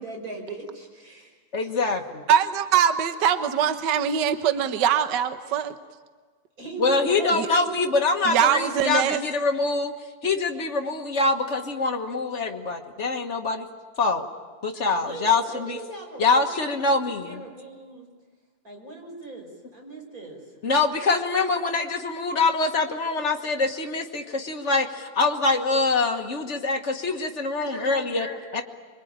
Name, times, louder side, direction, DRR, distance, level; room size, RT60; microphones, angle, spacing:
voice 1, 0.0-1.7 6.6-7.8 15.0-18.1 18.6-20.4 27.5-28.6, right 2 dB, 25° right, 1 dB, 5.8 m, -38 dB
voice 2, 1.5-2.2 6.8-9.9 10.2-13.7 14.0-14.3 14.6-15.8 16.2-17.4 20.6-28.3 28.5-28.6, left 3 dB, 50° left, 3 dB, 0.8 m, -24 dB
voice 3, 2.3-5.6 7.4-7.5 8.3-9.3, right 8 dB, 65° right, 9 dB, 1.0 m, -22 dB
26.5 x 24.0 x 8.9 m, 1.4 s
omnidirectional pair, 3.6 m